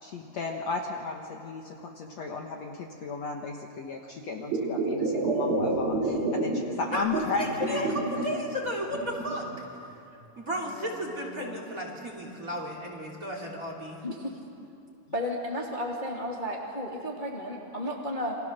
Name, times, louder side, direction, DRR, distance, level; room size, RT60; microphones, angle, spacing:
voice 1, 0.0-8.3 10.7-11.7, left 4 dB, 60° left, 1 dB, 2.1 m, -35 dB
sound 1, 4.4-6.6 6.9-8.3 8.7-9.6 10.2-10.3, right 3 dB, 70° right, 5.4 m, -29 dB
voice 2, 6.9-9.6 10.4-14.0, equal, 25° right, 0 dB, 3.1 m, -34 dB
voice 3, 15.1-18.4, left 1 dB, 15° left, -2 dB, 2.0 m, -33 dB
29.5 x 25.0 x 6.7 m, 2.6 s
omnidirectional pair, 4.3 m